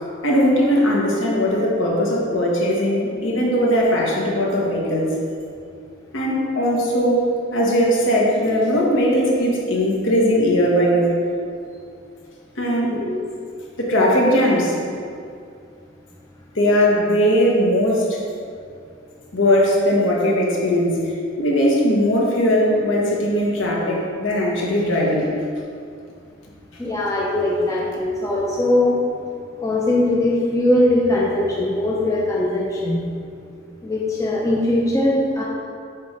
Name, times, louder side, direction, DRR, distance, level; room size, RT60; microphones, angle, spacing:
voice 1, 0.2-5.2 6.1-11.2 12.6-13.0 13.8-14.8 16.5-18.2 19.3-25.4, equal, 65° left, -3 dB, 1.3 m, -19 dB
voice 2, 26.8-29.0 29.6-33.0 33.8-35.4, left 1 dB, 15° left, -5 dB, 0.6 m, -20 dB
8.1 x 3.2 x 5.1 m, 2.3 s
head